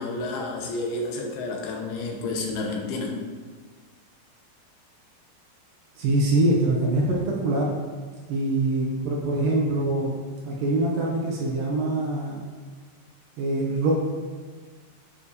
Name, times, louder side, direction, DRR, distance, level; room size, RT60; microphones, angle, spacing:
voice 1, 0.0-3.2, left 2 dB, 80° left, 0 dB, 2.6 m, -30 dB
voice 2, 6.0-7.7 8.3-10.2 10.5-12.4 13.4-13.9, right 2 dB, 75° right, -3 dB, 2.2 m, -24 dB
9.1 x 4.9 x 2.8 m, 1.5 s
omnidirectional pair, 4.6 m